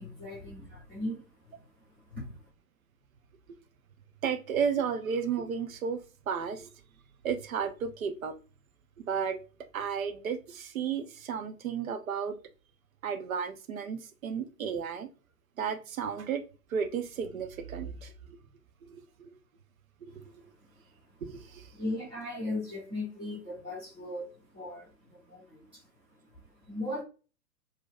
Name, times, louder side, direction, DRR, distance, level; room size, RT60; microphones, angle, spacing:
voice 1, 0.0-2.5 20.1-20.3 20.7-20.8 21.7-27.0, left 1 dB, 10° right, 0.4 m, -39 dB
voice 2, 4.2-6.0 6.3-6.7 7.2-8.3 9.0-9.4 9.7-12.4 13.0-15.1 15.6-16.4 16.7-18.4 18.8-19.3 20.0-20.4 21.2-21.7, right 7 dB, 55° right, 0.6 m, -33 dB
2.6 x 2.2 x 4.0 m
figure-of-eight pair, 115°, 49 cm